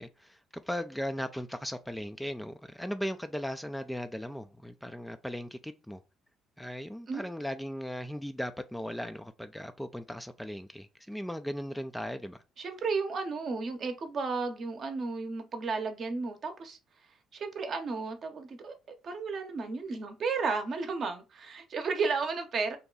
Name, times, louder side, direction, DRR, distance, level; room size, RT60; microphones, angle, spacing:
voice 1, 0.0-6.0 6.6-12.4, equal, 5° left, 0.3 m, -37 dB
voice 2, 12.6-16.8 17.3-18.7 19.0-22.8, right 4 dB, 50° right, 0.8 m, -33 dB
2.7 x 2.2 x 3.8 m
supercardioid pair, 70°, 0 cm